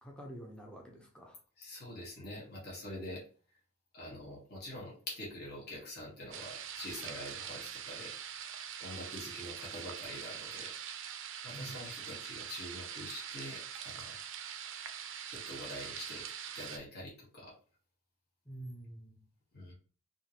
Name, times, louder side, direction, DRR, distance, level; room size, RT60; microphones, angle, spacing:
voice 1, 0.0-1.4 11.5-11.9 18.5-19.2, right 1 dB, 5° left, 0.5 m, -47 dB
voice 2, 1.6-3.2 3.9-8.1 8.8-10.7 11.4-14.2 15.3-17.5 19.5-19.7, left 1 dB, 45° left, 1.2 m, -45 dB
sound 1, 6.3-16.8, right 8 dB, 55° right, 0.4 m, -43 dB
3.6 x 2.5 x 2.8 m
head